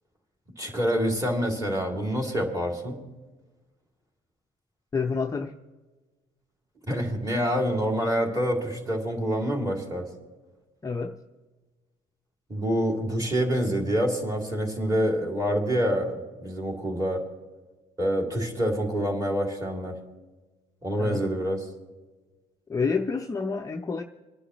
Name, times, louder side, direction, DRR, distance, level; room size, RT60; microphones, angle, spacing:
voice 1, 0.6-3.0 6.9-10.1 12.5-17.2 18.0-19.9 20.8-21.7, equal, 20° right, 2.7 m, -26 dB
voice 2, 4.9-5.6 10.8-11.2 21.0-21.2 22.7-24.0, left 5 dB, 20° left, 0.6 m, -28 dB
26.5 x 9.9 x 3.1 m
cardioid pair, 110°, 17 cm